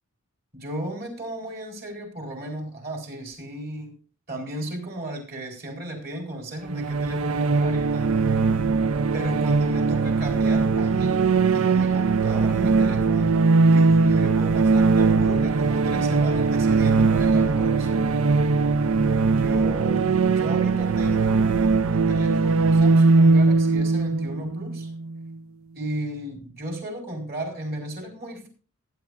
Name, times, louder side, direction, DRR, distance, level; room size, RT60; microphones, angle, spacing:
voice 1, 0.5-3.9 4.3-8.1 9.1-11.2 11.5-18.2 19.4-24.9 25.7-28.5, right 1 dB, 45° right, 4.5 m, -34 dB
sound 1, 6.7-25.3, right 4 dB, 80° right, 0.5 m, -20 dB
19.0 x 9.7 x 2.5 m
head